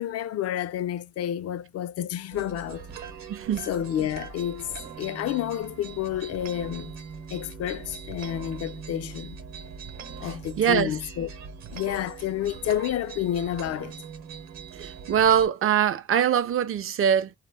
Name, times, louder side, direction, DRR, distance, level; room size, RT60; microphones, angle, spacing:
voice 1, 0.0-2.8 3.6-4.7 5.0-7.0 7.3-9.4 10.2-11.3 11.7-13.9, left 11 dB, 55° left, 0.4 m, -30 dB
sound 1, 2.3-15.5, right 6 dB, 65° right, 0.8 m, -41 dB
voice 2, 3.3-3.7 10.2-10.9 14.7-17.3, right 9 dB, 45° right, 0.5 m, -23 dB
2.2 x 2.0 x 3.4 m
cardioid pair, 90°, 30 cm